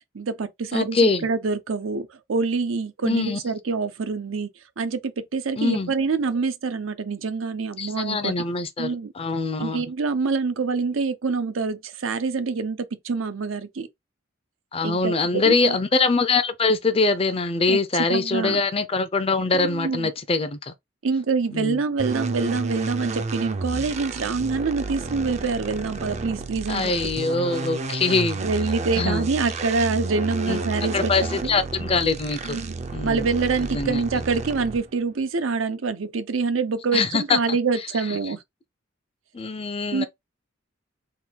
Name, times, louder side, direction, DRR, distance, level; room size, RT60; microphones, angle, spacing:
voice 1, 0.1-4.5 4.8-8.3 8.8-9.1 9.6-13.9 14.8-15.8 17.7-17.8 18.1-18.6 19.5-20.1 21.0-27.1 28.4-31.6 32.4-32.7 33.0-38.4 39.9-40.1, right 4 dB, 90° right, 0.6 m, -26 dB
voice 2, 0.7-1.2 3.0-3.4 5.6-5.9 7.8-9.8 14.7-20.7 21.5-21.8 26.7-28.4 29.0-29.3 30.5-30.6 30.9-32.6 32.9-33.3 33.7-34.0 36.9-37.6 39.3-40.1, left 3 dB, 30° left, 0.5 m, -23 dB
sound 1, 22.0-35.0, right 3 dB, 35° right, 0.4 m, -31 dB
3.7 x 2.3 x 4.3 m
head